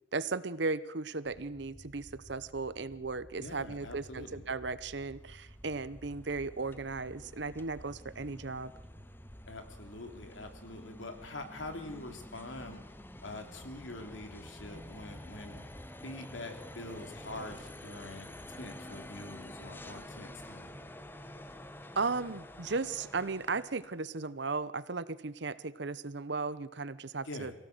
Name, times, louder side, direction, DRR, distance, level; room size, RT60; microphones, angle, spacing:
voice 1, 0.1-8.7 22.0-27.5, right 4 dB, 60° right, 16 dB, 0.9 m, -36 dB
sound 1, 1.2-15.9, equal, 15° right, 1.6 m, -55 dB
voice 2, 3.4-4.4 9.5-12.8 13.2-15.6 16.0-20.7 27.2-27.5, left 2 dB, 80° left, 6 dB, 2.9 m, -45 dB
sound 2, 4.3-24.0, left 1 dB, 10° left, 0.8 m, -49 dB
23.5 x 16.5 x 8.0 m, 0.95 s
head